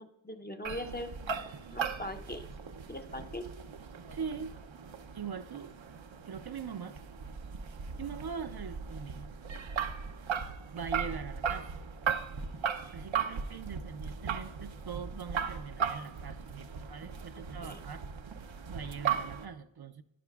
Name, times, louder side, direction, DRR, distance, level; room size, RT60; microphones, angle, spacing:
voice 1, 0.0-1.4 1.7-2.5 2.9-3.5 17.6-17.8, left 1 dB, 20° left, 7 dB, 0.6 m, -41 dB
sound 1, 0.6-19.5, right 7 dB, 90° right, 0.7 m, -37 dB
voice 2, 4.1-4.6 5.1-5.7 6.3-7.0 8.0-9.2 10.7-11.8 12.4-12.5 12.9-18.1 18.7-20.0, right 6 dB, 55° right, 10 dB, 0.5 m, -42 dB
11.0 x 10.5 x 2.3 m, 0.88 s
wide cardioid pair, 75°, 45 cm